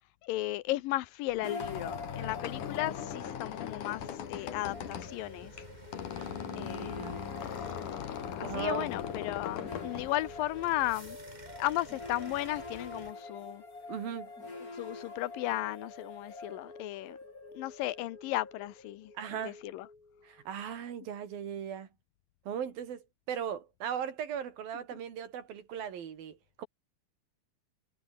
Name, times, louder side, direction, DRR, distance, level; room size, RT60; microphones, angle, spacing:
voice 1, 0.2-5.5 6.6-7.0 8.3-11.2 11.6-13.6 14.8-17.2 17.5-19.1 19.4-19.9, left 16 dB, 80° left, 2.5 m, -35 dB
Squeak, 1.3-10.9, left 9 dB, 65° left, 3.4 m, -40 dB
sound 1, 1.4-20.5, left 3 dB, 25° left, 4.4 m, -46 dB
sound 2, 4.6-13.1, right 2 dB, 15° right, 1.9 m, -53 dB
voice 2, 6.1-7.2 8.4-8.9 9.6-9.7 13.9-14.3 19.1-19.6 20.2-21.9 22.5-26.7, right 8 dB, 80° right, 4.5 m, -38 dB
omnidirectional pair, 4.1 m